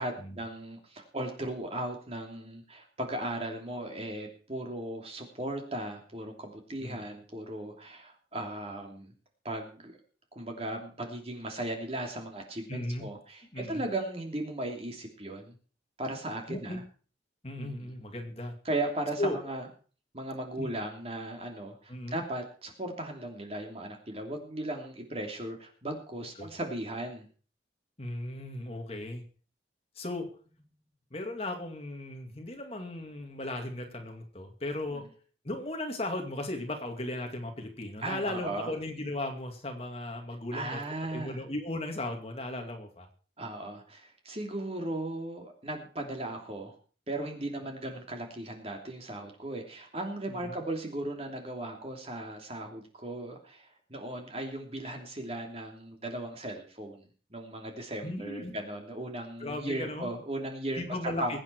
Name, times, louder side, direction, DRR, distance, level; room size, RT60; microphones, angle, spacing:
voice 1, 0.0-9.1 9.4-10.0 10.3-15.6 16.0-16.8 17.6-17.9 18.6-19.7 20.1-27.3 34.9-35.0 38.0-38.7 40.5-41.4 43.4-44.0 44.2-46.7 47.1-61.4, right 1 dB, 35° right, 3 dB, 3.0 m, -37 dB
voice 2, 12.7-13.1 13.5-13.8 16.5-16.8 17.4-18.6 19.2-19.4 20.6-20.7 21.9-22.2 26.4-26.5 28.0-29.2 30.0-30.4 31.1-35.2 35.4-40.8 41.1-43.1 50.3-50.6 58.0-58.6 59.4-60.1 60.8-61.4, left 1 dB, 35° left, 4 dB, 2.3 m, -36 dB
21.5 x 8.8 x 4.6 m, 0.40 s
head